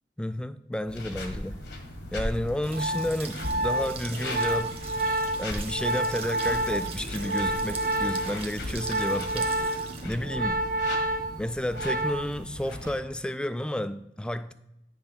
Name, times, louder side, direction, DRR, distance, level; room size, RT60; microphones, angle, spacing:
voice 1, 0.2-1.6 2.1-4.9 5.4-10.7 11.4-14.5, left 1 dB, 5° left, 0.3 m, -31 dB
sound 1, 0.9-13.0, left 1 dB, 75° left, 1.5 m, -38 dB
Organ, 2.4-12.4 12.7-13.0, right 1 dB, 55° right, 0.8 m, -29 dB
sound 2, 2.6-12.3, right 4 dB, 35° right, 1.1 m, -42 dB
9.9 x 3.4 x 5.7 m
head